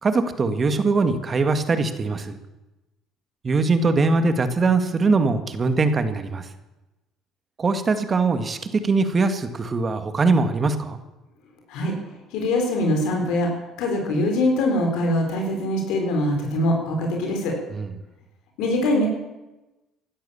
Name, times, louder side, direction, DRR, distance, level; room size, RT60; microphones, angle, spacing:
voice 1, 0.0-2.4 3.4-6.5 7.6-11.0 17.7-17.9, right 3 dB, 35° right, 9 dB, 2.0 m, -22 dB
voice 2, 12.3-13.5 13.8-17.5 18.6-19.1, left 1 dB, 75° left, 2 dB, 4.4 m, -23 dB
16.5 x 11.5 x 7.2 m, 1.0 s
supercardioid pair, 75°, 0 cm